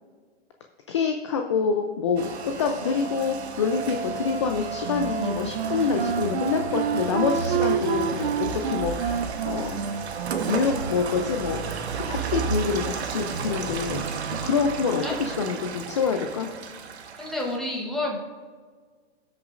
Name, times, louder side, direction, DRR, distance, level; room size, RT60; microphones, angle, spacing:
voice 1, 0.9-9.8 10.5-11.6 12.1-14.1 14.4-16.5, left 5 dB, 30° left, 4 dB, 0.4 m, -26 dB
Rain, 2.2-17.6, right 5 dB, 80° right, 1.1 m, -32 dB
Wind instrument woodwind instrument, 4.8-10.7, right 7 dB, 60° right, 0.6 m, -29 dB
voice 2, 17.2-18.2, left 1 dB, ahead, -2 dB, 0.8 m, -29 dB
18.5 x 6.2 x 2.5 m, 1.6 s
hypercardioid pair, 155°, 33 cm